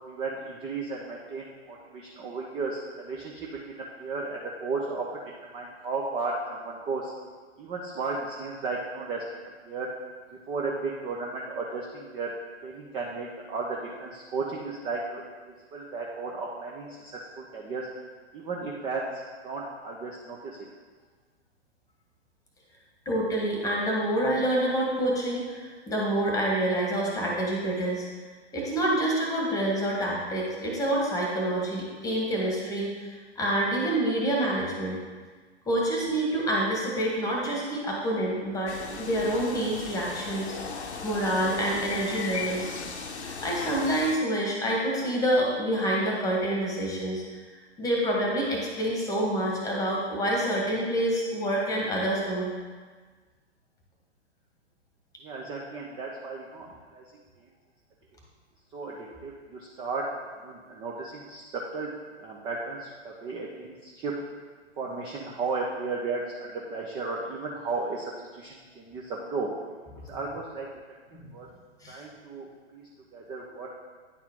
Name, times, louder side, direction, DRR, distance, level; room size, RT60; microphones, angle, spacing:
voice 1, 0.1-7.1 7.6-9.2 9.7-9.9 10.5-12.3 12.6-15.2 15.5-17.9 18.3-20.6 55.2-57.1 57.4-57.5 58.7-60.1 60.4-61.9 62.2-64.1 64.8-69.5 70.0-70.7 71.3-71.5 71.9-73.7, right 3 dB, 15° right, -2 dB, 0.5 m, -34 dB
voice 2, 23.0-28.1 28.5-33.1 33.3-35.0 35.6-42.7 43.2-47.2 47.8-52.5 71.1-71.3 71.8-72.0, right 1 dB, 10° left, -2 dB, 1.5 m, -27 dB
sound 1, 38.7-44.2, left 4 dB, 75° left, 0.8 m, -37 dB
9.6 x 4.6 x 3.6 m, 1.4 s
figure-of-eight pair, 115°, 34 cm